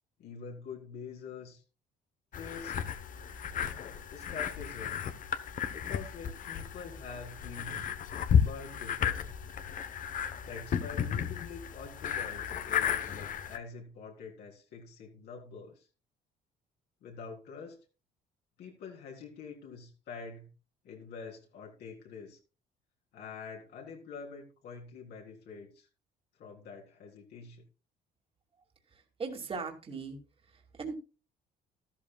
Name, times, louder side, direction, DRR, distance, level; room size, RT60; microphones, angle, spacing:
voice 1, 0.2-1.6 2.3-2.8 4.1-5.0 5.7-7.8 8.4-9.2 10.4-15.9 17.0-17.8 18.6-20.5 20.8-22.4 23.1-25.9 26.4-27.6, left 5 dB, 75° left, 0 dB, 3.7 m, -46 dB
sound 1, 2.3-13.6, left 8 dB, 50° left, 1.0 m, -33 dB
voice 2, 28.9-30.2 30.5-30.9, right 4 dB, 35° right, 3 dB, 2.5 m, -39 dB
13.5 x 12.5 x 2.3 m, 0.32 s
cardioid pair, 110°, 17 cm